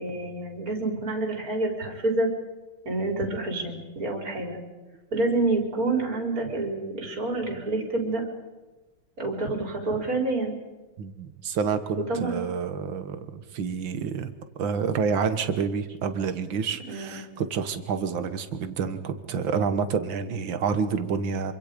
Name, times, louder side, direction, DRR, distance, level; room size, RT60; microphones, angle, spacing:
voice 1, 0.0-2.3 2.8-4.6 5.1-8.2 9.2-10.5 12.0-12.4 16.9-17.2, right 2 dB, 40° right, 2 dB, 4.3 m, -28 dB
voice 2, 11.0-14.3 14.6-21.5, right 6 dB, 65° right, 10 dB, 2.1 m, -28 dB
26.5 x 25.0 x 5.2 m, 1.2 s
omnidirectional pair, 2.3 m